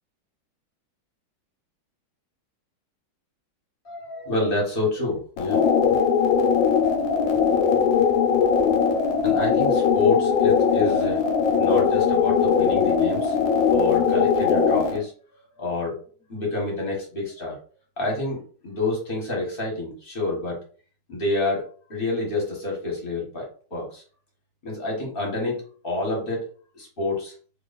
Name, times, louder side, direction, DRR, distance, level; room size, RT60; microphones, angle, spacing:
voice 1, 3.8-6.0 9.2-11.2 11.6-13.3 13.7-15.1 15.6-16.0 16.3-17.6 18.0-20.6 21.1-21.6 21.9-24.0 24.6-25.6 25.8-26.5 26.7-27.3, left 2 dB, 30° left, -2 dB, 1.2 m, -28 dB
sound 1, 5.4-15.0, left 6 dB, 70° left, 1.4 m, -20 dB
3.1 x 2.9 x 4.0 m, 0.41 s
omnidirectional pair, 2.3 m